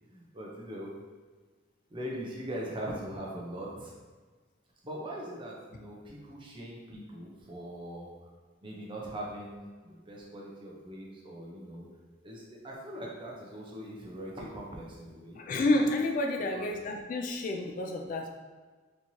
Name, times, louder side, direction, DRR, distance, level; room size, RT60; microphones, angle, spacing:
voice 1, 0.1-0.9 1.9-3.9 4.8-8.1 8.6-11.9 12.2-15.4 16.5-16.7, right 1 dB, 25° right, -3 dB, 0.7 m, -41 dB
voice 2, 15.4-18.3, left 2 dB, 45° left, 2 dB, 0.3 m, -29 dB
4.3 x 3.0 x 2.7 m, 1.4 s
head